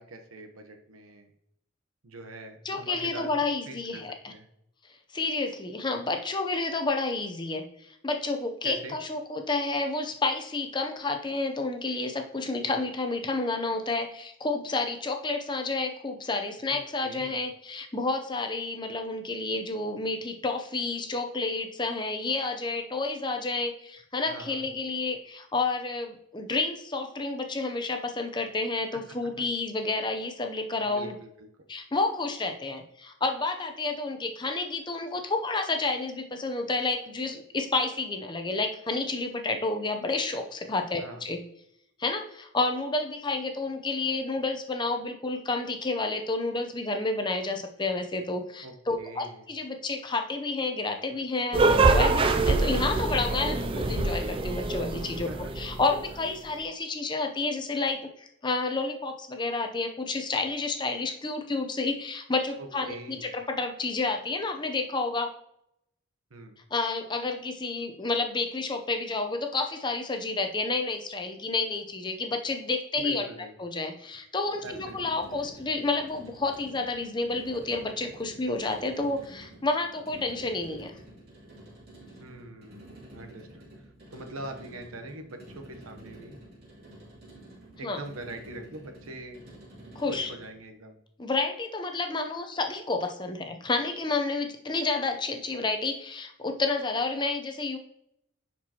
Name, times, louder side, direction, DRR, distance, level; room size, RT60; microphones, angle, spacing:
voice 1, 0.0-1.3 2.0-3.3 3.7-4.5 8.6-9.0 16.7-17.4 24.3-24.7 28.9-29.2 30.8-31.5 41.0-41.2 48.6-49.5 52.2-52.4 55.3-55.5 62.6-63.4 66.3-66.6 73.0-73.8 74.6-75.3 82.2-83.8 84.1-86.4 87.8-89.4 90.1-91.0, right 2 dB, 90° right, 5 dB, 1.0 m, -43 dB
voice 2, 2.6-4.1 5.1-7.6 8.0-31.1 31.7-41.4 42.0-55.3 55.6-65.3 66.7-73.2 73.6-80.9 87.8-88.0 90.0-90.3 91.2-97.8, left 3 dB, 20° left, 5 dB, 0.6 m, -30 dB
sound 1, 51.5-56.2, right 3 dB, 25° right, 0.4 m, -25 dB
sound 2, 74.4-90.6, right 1 dB, 50° right, 3.0 m, -49 dB
10.0 x 4.6 x 2.9 m, 0.77 s
head